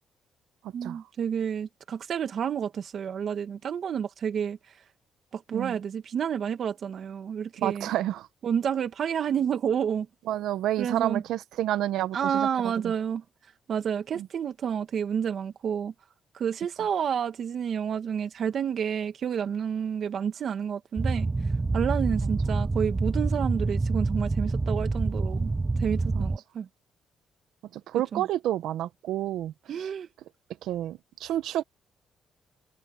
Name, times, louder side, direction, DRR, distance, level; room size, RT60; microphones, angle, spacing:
voice 1, 0.7-4.6 5.3-7.9 8.4-10.1 10.8-11.2 12.1-13.2 13.7-15.9 16.3-21.3 21.7-25.5 25.8-26.7 28.1-28.2 29.7-30.1, right 8 dB, 60° right, 1.8 m, -29 dB
voice 2, 7.6-8.3 10.3-12.5 12.8-12.9 14.1-14.3 26.2-26.3 27.7-29.5 29.8-29.9 30.6-31.6, right 13 dB, 85° right, 0.7 m, -29 dB
sound 1, 21.0-26.4, right 3 dB, 20° right, 0.3 m, -27 dB
cardioid pair, 90°, 0 cm